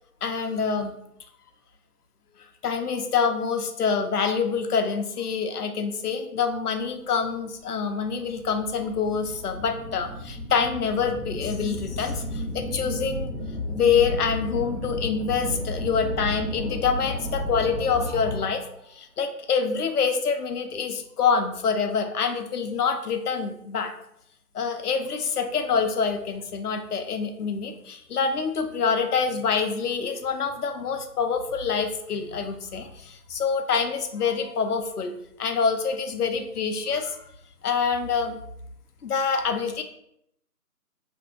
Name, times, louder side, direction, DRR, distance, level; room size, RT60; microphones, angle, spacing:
voice 1, 0.2-1.0 2.6-13.3 13.7-18.6 18.9-23.9 24.5-37.2 37.6-38.4 39.0-39.8, left 6 dB, 70° left, 6 dB, 0.5 m, -26 dB
sound 1, 7.3-7.4 8.0-18.7, left 1 dB, ahead, 0.3 m, -33 dB
2.6 x 2.6 x 2.5 m, 0.75 s
figure-of-eight pair, 175°, 47 cm